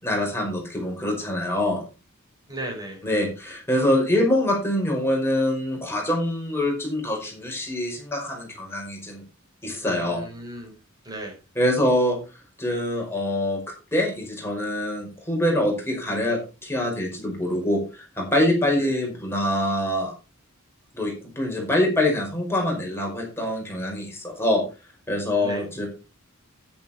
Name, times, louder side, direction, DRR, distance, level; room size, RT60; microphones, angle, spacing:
voice 1, 0.0-1.8 3.0-9.2 9.6-10.2 11.6-12.2 12.6-13.6 13.9-20.1 20.9-24.6 25.1-25.9, left 1 dB, 10° left, 0 dB, 5.3 m, -24 dB
voice 2, 2.5-3.0 9.8-10.7 11.0-11.3 18.8-18.9 25.4-25.6, right 1 dB, 20° right, 1 dB, 5.0 m, -36 dB
10.5 x 10.5 x 4.4 m, 0.31 s
head